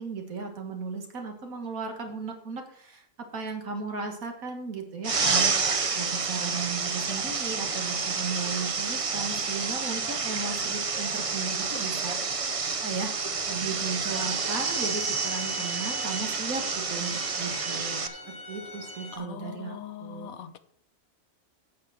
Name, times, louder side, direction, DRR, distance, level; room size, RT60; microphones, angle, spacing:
voice 1, 0.0-12.2 12.8-13.1 13.5-20.3, right 4 dB, 85° right, 4 dB, 2.0 m, -36 dB
sound 1, 5.0-18.1, right 5 dB, 40° right, 0.5 m, -29 dB
sound 2, 14.1-19.2, equal, 50° left, 1.8 m, -40 dB
voice 2, 19.1-20.6, left 9 dB, 85° left, 11 dB, 1.3 m, -41 dB
8.6 x 7.5 x 5.9 m, 0.65 s
omnidirectional pair, 1.4 m